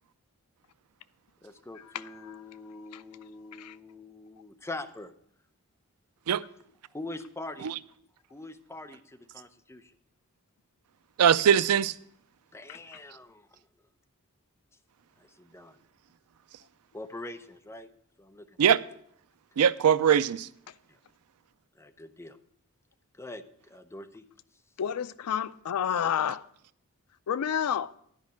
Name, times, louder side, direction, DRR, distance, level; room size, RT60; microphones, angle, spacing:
voice 1, 1.4-5.1 6.9-7.7 8.3-9.9 12.5-13.5 15.2-15.8 16.9-17.9 18.2-18.8 19.6-19.7 20.9-21.0 21.8-22.4 23.2-24.2, left 2 dB, 10° left, 0.6 m, -43 dB
voice 2, 1.9-2.4 2.9-3.0 3.5-3.8 12.7-12.8 24.8-26.5 27.3-27.9, left 8 dB, 80° left, 0.4 m, -30 dB
voice 3, 11.2-11.9 18.6-18.8 19.6-20.5, right 8 dB, 85° right, 0.4 m, -21 dB
10.5 x 5.2 x 7.3 m
head